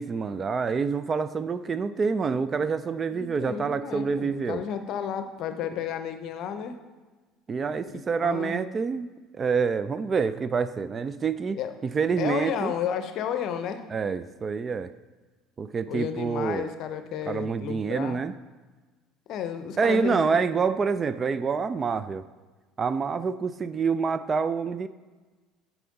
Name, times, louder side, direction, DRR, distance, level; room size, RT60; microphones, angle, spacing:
voice 1, 0.0-4.6 7.5-9.1 9.3-12.7 13.9-14.9 15.6-16.7 17.3-18.3 19.8-22.2 22.8-24.9, right 5 dB, 30° right, 14 dB, 0.3 m, -27 dB
voice 2, 3.1-6.8 7.9-8.6 11.5-11.7 12.2-13.9 15.9-18.2 19.3-20.5, left 8 dB, 50° left, 9 dB, 0.6 m, -32 dB
9.1 x 6.0 x 3.9 m, 1.3 s
figure-of-eight pair, 60°, 0 cm